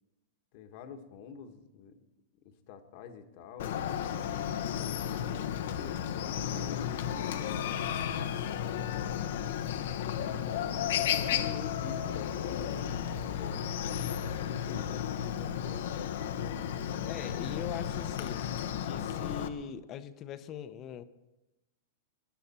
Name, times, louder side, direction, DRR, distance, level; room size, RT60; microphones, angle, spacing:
voice 1, 0.5-2.0 2.3-3.7 4.5-7.3 8.4-9.3 10.3-13.7 14.3-16.4, left 7 dB, 55° left, 7 dB, 1.4 m, -48 dB
Chicken rooster, 3.6-19.5, left 9 dB, 70° left, 0.9 m, -33 dB
voice 2, 17.0-18.4 18.8-21.0, left 8 dB, 35° left, 12 dB, 0.8 m, -41 dB
20.0 x 10.5 x 4.4 m, 0.99 s
hypercardioid pair, 120°, 0 cm